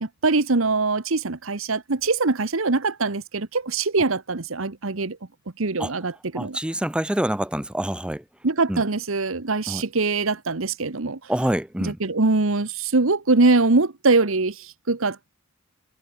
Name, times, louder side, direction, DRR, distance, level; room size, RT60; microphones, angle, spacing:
voice 1, 0.0-5.2 5.6-6.6 8.4-11.2 11.8-15.3, right 3 dB, 70° right, 1.2 m, -23 dB
voice 2, 6.3-8.2 8.7-8.8 9.7-9.8 11.3-12.0, right 1 dB, 5° right, 0.6 m, -26 dB
head